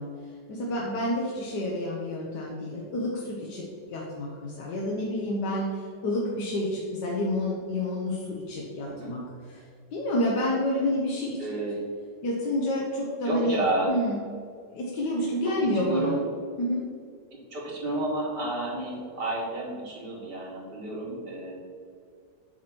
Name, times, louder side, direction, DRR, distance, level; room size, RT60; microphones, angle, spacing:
voice 1, 0.0-11.4 12.2-13.6 13.9-14.2 14.7-16.2 16.6-16.9, left 1 dB, 70° left, -3 dB, 1.5 m, -29 dB
voice 2, 11.4-11.8 13.2-13.9 15.4-15.5 15.8-16.2 17.5-21.5, right 2 dB, 65° right, -5 dB, 2.2 m, -30 dB
8.7 x 3.0 x 5.9 m, 2.2 s
omnidirectional pair, 2.0 m